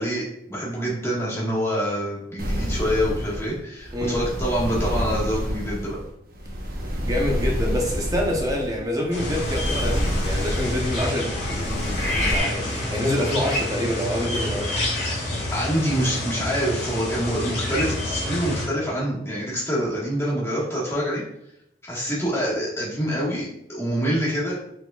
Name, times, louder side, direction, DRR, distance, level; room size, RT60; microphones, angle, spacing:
voice 1, 0.0-6.0 15.5-21.2 21.8-24.6, equal, 15° left, -7 dB, 1.5 m, -26 dB
sound 1, 2.4-12.4, equal, 60° right, 0.8 m, -28 dB
voice 2, 3.9-4.2 6.9-14.7, left 1 dB, 20° right, 0 dB, 0.8 m, -27 dB
sound 2, 9.1-18.7, left 1 dB, 40° left, 1.7 m, -28 dB
4.7 x 4.1 x 2.4 m, 0.78 s
head